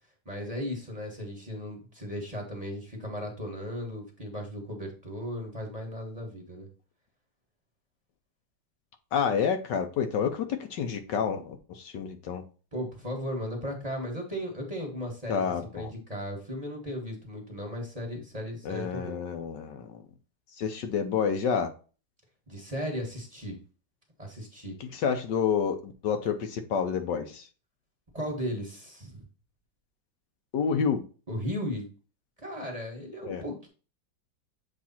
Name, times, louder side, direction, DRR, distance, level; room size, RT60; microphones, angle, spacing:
voice 1, 0.2-6.7 12.7-19.2 22.5-23.6 24.2-24.8 28.1-29.2 31.3-31.9 32.4-33.7, equal, 20° right, 1.5 m, -36 dB
voice 2, 9.1-12.4 15.3-15.9 18.6-20.0 20.6-21.7 24.8-27.5 30.5-31.0 33.2-33.4, left 7 dB, 70° left, 1.4 m, -29 dB
7.5 x 3.4 x 4.2 m
omnidirectional pair, 2.0 m